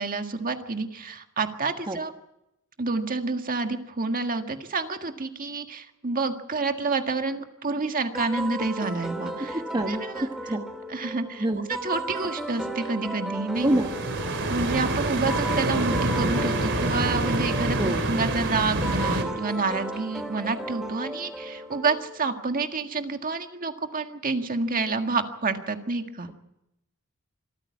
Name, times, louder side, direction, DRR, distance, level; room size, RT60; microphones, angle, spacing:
voice 1, 0.0-2.1 2.8-9.6 9.9-10.3 10.9-11.5 11.8-13.7 14.5-26.3, right 3 dB, 40° right, 6 dB, 1.7 m, -28 dB
sound 1, 8.1-22.4, right 1 dB, ahead, 2.3 m, -35 dB
voice 2, 9.5-10.6 11.4-11.7 13.6-13.9 17.8-18.0, right 1 dB, 20° right, 4 dB, 1.2 m, -26 dB
sound 2, 13.6-19.2, right 1 dB, 55° right, 3.4 m, -27 dB
26.0 x 14.5 x 8.5 m, 0.87 s
head